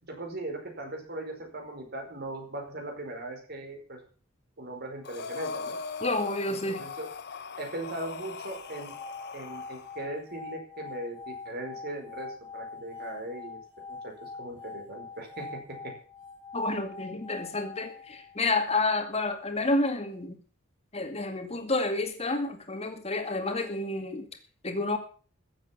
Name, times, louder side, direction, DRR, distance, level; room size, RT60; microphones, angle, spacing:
voice 1, 0.1-4.0 4.6-5.8 6.5-7.1 7.6-8.9 9.3-13.6 13.9-15.5 15.8-15.9, right 1 dB, 50° right, 3 dB, 4.8 m, -39 dB
Breathing, 5.0-10.0, left 4 dB, 55° left, 1.3 m, -39 dB
voice 2, 6.0-6.8 16.5-20.4 20.9-24.3 24.6-25.0, left 2 dB, 30° left, 6 dB, 2.3 m, -29 dB
sound 1, 8.5-18.7, left 4 dB, 10° right, 4.8 m, -44 dB
15.0 x 7.9 x 7.3 m, 0.41 s
head